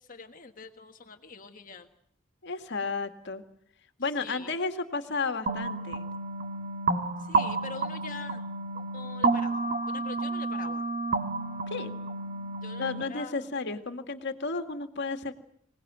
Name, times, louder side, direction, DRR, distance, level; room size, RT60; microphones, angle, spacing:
voice 1, 0.0-1.9 4.2-4.5 7.2-8.4 8.7-10.8 12.6-13.5, left 4 dB, 40° left, 5 dB, 1.5 m, -44 dB
voice 2, 2.4-3.4 4.0-6.0 11.7-11.9 12.8-15.3, left 4 dB, 55° left, 6 dB, 2.1 m, -33 dB
sound 1, 5.5-13.0, right 3 dB, 40° right, 1.8 m, -30 dB
26.5 x 18.5 x 9.5 m, 0.67 s
head